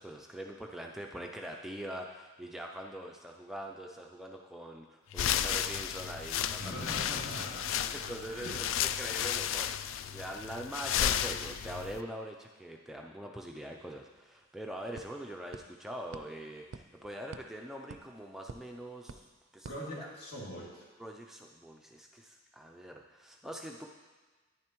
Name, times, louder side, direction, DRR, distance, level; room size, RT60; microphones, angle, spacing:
voice 1, 0.0-7.2 7.9-19.3 19.5-20.1 21.0-23.9, right 1 dB, ahead, 1 dB, 0.3 m, -43 dB
sound 1, 5.1-12.0, left 10 dB, 80° left, 0.3 m, -33 dB
voice 2, 6.6-8.6 19.7-20.8, equal, 55° left, -5 dB, 2.4 m, -42 dB
sound 2, 13.8-13.9 14.2-20.6, right 4 dB, 80° right, 0.4 m, -52 dB
10.5 x 9.8 x 3.0 m, 1.3 s
head